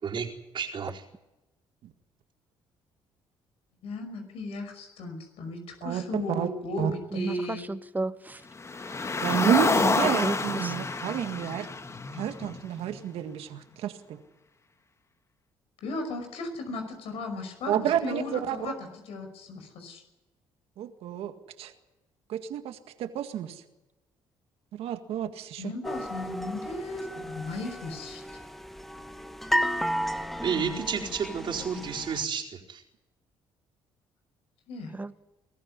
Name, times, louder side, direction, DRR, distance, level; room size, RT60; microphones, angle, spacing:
voice 1, 0.5-1.0 30.4-32.8, right 6 dB, 55° right, 0 dB, 4.5 m, -31 dB
voice 2, 3.8-7.6 15.8-18.7 19.1-20.0 25.6-28.4 34.7-34.9, left 2 dB, 75° left, 5 dB, 5.6 m, -36 dB
voice 3, 5.8-6.5 6.8-6.9 9.2-11.7 12.1-14.2 17.7-18.8 20.8-21.3 21.6-21.7 22.3-23.6 24.7-25.7, right 10 dB, 75° right, 7 dB, 1.9 m, -30 dB
voice 4, 7.1-8.4 9.4-9.5 9.8-9.9 10.2-10.7 35.0-35.2, right 2 dB, 15° right, 13 dB, 1.3 m, -33 dB
Car, 8.6-13.0, left 4 dB, 30° left, 1.4 m, -28 dB
sound 1, 25.8-32.2, equal, ahead, 1.6 m, -33 dB
22.5 x 14.5 x 9.8 m, 1.0 s
supercardioid pair, 70°, 10 cm